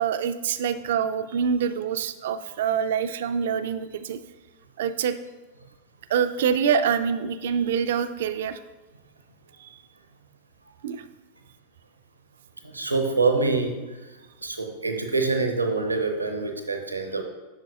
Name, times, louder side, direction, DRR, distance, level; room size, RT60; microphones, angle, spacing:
voice 1, 0.0-4.2 4.8-5.2 6.1-8.6 10.8-11.0, right 7 dB, 55° right, 11 dB, 0.4 m, -25 dB
voice 2, 12.7-13.7 14.4-17.2, right 3 dB, 80° right, 4 dB, 0.7 m, -25 dB
8.6 x 6.2 x 2.3 m, 1.2 s
figure-of-eight pair, 90°, 0 cm